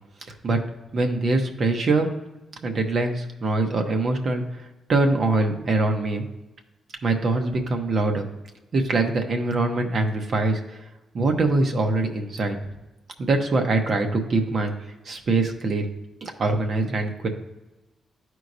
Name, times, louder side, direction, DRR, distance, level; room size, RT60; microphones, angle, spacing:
voice 1, 0.9-2.1 2.6-4.4 4.9-6.2 7.0-8.3 8.7-10.8 11.1-12.6 13.2-14.7 15.1-15.9 16.2-17.3, right 2 dB, 45° right, 4 dB, 0.9 m, -23 dB
12.0 x 4.6 x 2.7 m, 1.0 s
cardioid pair, 130°, 0 cm